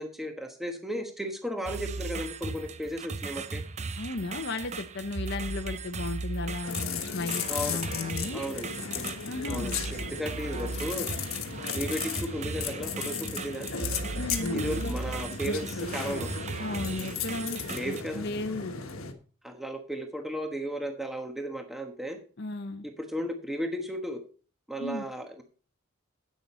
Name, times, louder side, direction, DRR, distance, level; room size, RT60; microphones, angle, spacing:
voice 1, 0.0-3.6 7.5-7.9 8.3-8.7 8.9-9.1 9.5-11.1 11.7-13.7 14.5-16.3 17.7-18.2 19.4-22.2 22.8-24.2 24.7-25.4, equal, ahead, 4 dB, 1.2 m, -35 dB
sound 1, 1.6-18.0, right 4 dB, 30° right, 0.6 m, -37 dB
voice 2, 4.0-8.4 9.2-9.7 14.2-14.9 16.6-18.8 22.4-22.9 24.8-25.0, left 2 dB, 55° left, 7 dB, 0.9 m, -35 dB
sound 2, 6.6-19.1, left 6 dB, 75° left, 1.4 m, -35 dB
10.5 x 8.6 x 4.3 m, 0.40 s
head